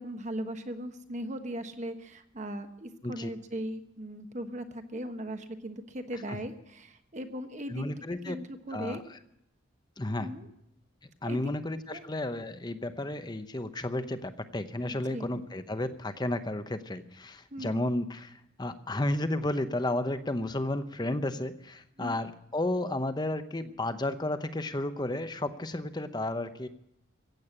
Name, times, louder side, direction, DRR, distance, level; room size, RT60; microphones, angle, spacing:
voice 1, 0.0-7.9 8.2-9.0 10.2-10.5 11.2-11.6 11.9-12.0 15.1-15.3 17.5-17.9 22.0-22.2, equal, 35° right, 8 dB, 1.2 m, -38 dB
voice 2, 7.7-8.4 8.7-9.0 10.0-10.3 11.2-26.7, left 1 dB, 20° left, 11 dB, 0.8 m, -32 dB
15.5 x 8.4 x 9.7 m, 0.77 s
head